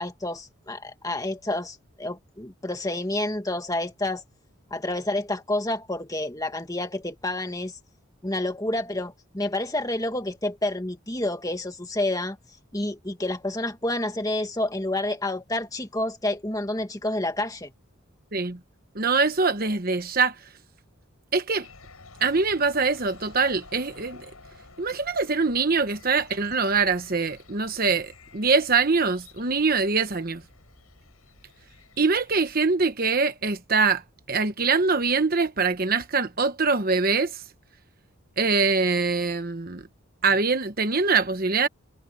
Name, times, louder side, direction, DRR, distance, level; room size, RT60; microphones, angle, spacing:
voice 1, 0.0-4.2 4.7-7.7 8.2-12.4 12.7-17.7, left 1 dB, 15° left, 1.8 m, -29 dB
voice 2, 18.9-20.4 21.3-21.7 22.2-24.3 24.8-30.4 32.0-34.0 34.3-37.4 38.4-39.9 40.2-41.7, right 4 dB, 40° right, 1.1 m, -23 dB
sound 1, 21.6-32.6, left 3 dB, 85° left, 6.5 m, -51 dB
head